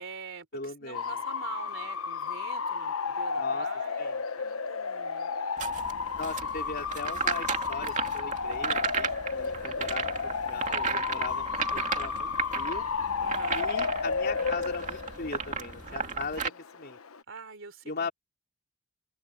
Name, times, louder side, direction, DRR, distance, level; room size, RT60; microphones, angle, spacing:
voice 1, 0.0-5.3 13.2-13.6 15.9-16.6 17.3-18.1, right 5 dB, 65° right, 3.6 m, -45 dB
voice 2, 0.5-1.1 3.4-3.7 4.0-4.2 6.2-12.9 13.5-17.0 17.9-18.1, left 4 dB, 50° left, 3.4 m, -39 dB
Bark / Motor vehicle (road) / Siren, 0.9-17.2, left 5 dB, 85° left, 1.0 m, -33 dB
sound 1, 5.6-16.5, right 5 dB, 35° right, 2.6 m, -34 dB
head